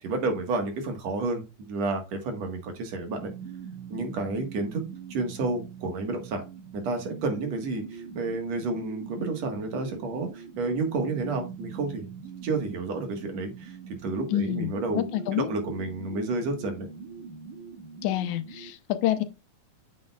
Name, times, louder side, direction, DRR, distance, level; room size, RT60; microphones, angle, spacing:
voice 1, 0.0-1.4 1.7-3.3 3.9-4.8 5.1-6.4 6.7-12.1 12.4-13.8 14.0-15.0 15.3-16.9, right 3 dB, 65° right, 2.6 m, -30 dB
sound 1, 3.2-18.7, right 6 dB, 80° right, 3.1 m, -43 dB
voice 2, 14.3-15.5 18.0-19.2, left 12 dB, 80° left, 2.1 m, -28 dB
8.8 x 7.5 x 2.3 m
omnidirectional pair, 3.4 m